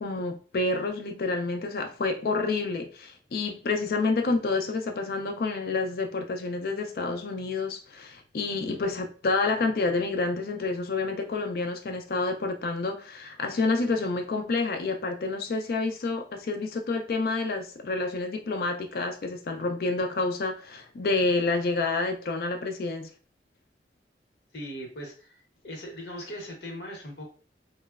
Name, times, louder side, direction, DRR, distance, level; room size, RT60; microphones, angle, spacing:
voice 1, 0.0-23.1, left 3 dB, 55° left, 0.4 m, -28 dB
voice 2, 24.5-27.3, equal, 80° left, 0.8 m, -39 dB
3.1 x 2.0 x 2.3 m
head